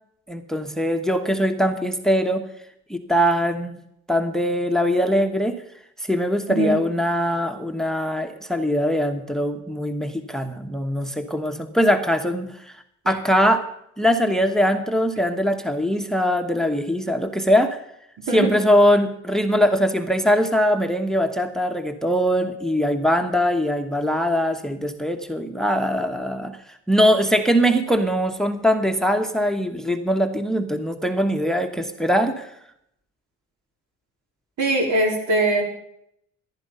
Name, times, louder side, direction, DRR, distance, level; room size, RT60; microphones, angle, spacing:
voice 1, 0.3-2.4 2.9-3.8 4.1-5.6 6.0-12.5 13.1-13.6 14.0-17.8 18.3-26.6 26.9-32.5, equal, ahead, 7 dB, 1.1 m, -21 dB
voice 2, 34.6-35.6, right 2 dB, 75° right, 1 dB, 4.1 m, -21 dB
15.0 x 10.5 x 5.5 m, 0.75 s
cardioid pair, 90°, 30 cm